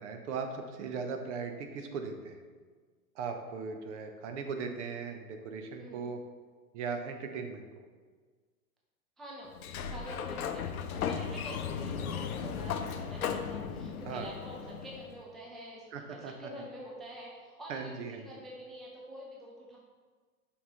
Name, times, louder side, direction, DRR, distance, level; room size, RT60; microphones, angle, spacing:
voice 1, 0.0-2.4 3.1-6.2 6.7-7.8 14.0-14.3 15.9-16.7 17.7-18.4, right 5 dB, 50° right, 5 dB, 0.9 m, -38 dB
voice 2, 9.2-9.5 9.9-19.8, equal, ahead, -4 dB, 0.4 m, -46 dB
Sliding door, 9.5-15.2, left 7 dB, 70° left, 0.6 m, -36 dB
5.5 x 4.1 x 4.3 m, 1.5 s
hypercardioid pair, 110°, 45 cm